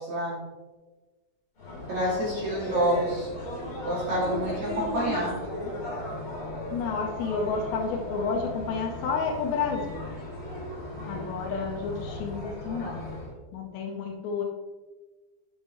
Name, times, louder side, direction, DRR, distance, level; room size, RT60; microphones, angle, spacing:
voice 1, 0.1-0.4 1.9-3.3 3.8-5.4, equal, 45° right, -7 dB, 3.4 m, -28 dB
sound 1, 1.6-13.3, left 1 dB, 35° left, 2.8 m, -36 dB
voice 2, 6.7-10.0 11.0-13.1 13.5-14.4, left 5 dB, 75° left, 1 dB, 2.9 m, -30 dB
9.3 x 7.2 x 3.2 m, 1.2 s
omnidirectional pair, 5.4 m